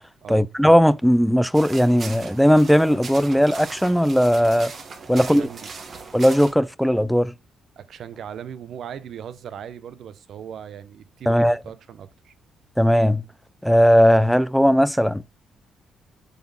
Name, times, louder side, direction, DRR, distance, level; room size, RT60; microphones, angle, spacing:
voice 1, 0.3-4.7 5.1-5.5 6.1-7.3 11.3-11.6 12.8-13.2 13.6-15.4, equal, ahead, 0.3 m, -17 dB
sound 1, 1.5-6.5, right 4 dB, 45° right, 1.5 m, -38 dB
voice 2, 5.1-5.7 7.8-12.3, right 8 dB, 65° right, 0.7 m, -38 dB
8.5 x 4.0 x 4.0 m
cardioid pair, 90°, 0 cm